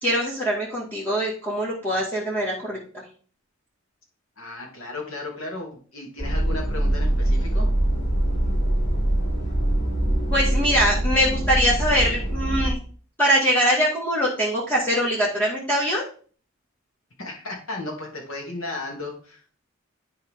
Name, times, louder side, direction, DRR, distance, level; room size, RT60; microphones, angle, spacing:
voice 1, 0.0-2.8 10.3-12.8 13.2-16.0, equal, 10° left, -6 dB, 2.1 m, -22 dB
voice 2, 4.4-7.7 17.2-19.4, left 2 dB, 75° left, 0 dB, 2.8 m, -35 dB
sound 1, 6.2-12.7, right 1 dB, 35° left, 4.1 m, -23 dB
12.0 x 4.6 x 3.7 m, 0.42 s
head